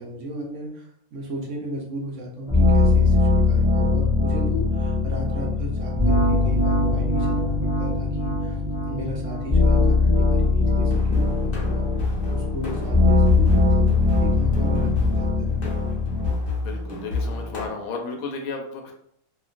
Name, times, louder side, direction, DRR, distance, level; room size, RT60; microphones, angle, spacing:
voice 1, 0.0-8.6 8.8-15.6, equal, 65° right, -1 dB, 0.8 m, -35 dB
sound 1, 2.5-16.3, left 3 dB, 15° right, 0.4 m, -21 dB
sound 2, 10.8-17.7, left 2 dB, 55° left, 0.6 m, -30 dB
voice 2, 16.6-18.9, left 4 dB, 75° left, 2 dB, 1.0 m, -33 dB
2.9 x 2.4 x 2.4 m, 0.70 s
omnidirectional pair, 1.6 m